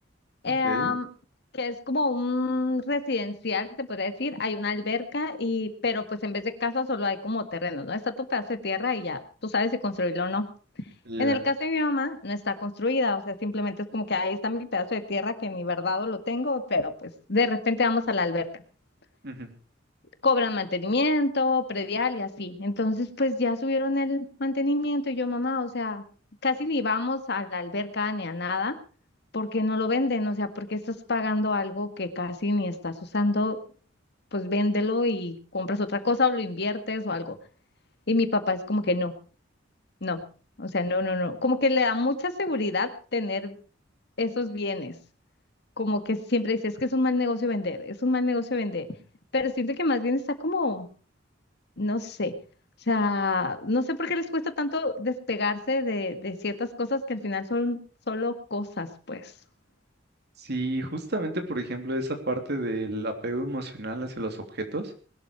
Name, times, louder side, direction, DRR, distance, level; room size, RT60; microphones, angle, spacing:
voice 1, 0.4-1.1 1.5-10.5 11.2-18.6 20.2-26.0 26.4-28.7 29.3-33.6 34.3-37.3 38.1-39.1 40.0-40.2 40.6-43.6 44.2-45.0 45.8-48.9 49.3-50.9 51.8-52.3 52.9-57.8 58.1-59.3, left 3 dB, 60° left, 9 dB, 1.9 m, -27 dB
voice 2, 11.1-11.4 19.2-19.5 60.4-64.9, right 1 dB, 60° right, 6 dB, 3.3 m, -31 dB
20.5 x 12.5 x 4.7 m, 0.39 s
head